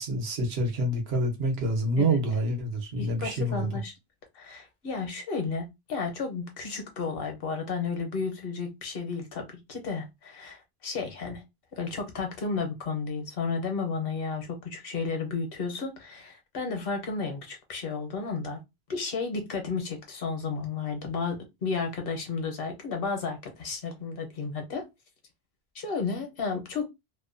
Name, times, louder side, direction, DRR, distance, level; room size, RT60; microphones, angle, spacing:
voice 1, 0.0-3.8, right 1 dB, 80° right, 1.0 m, -27 dB
voice 2, 3.0-3.9 4.3-11.4 11.7-18.6 18.9-24.8 25.7-26.8, left 4 dB, 70° left, 0.9 m, -33 dB
2.6 x 2.1 x 2.5 m
omnidirectional pair, 1.0 m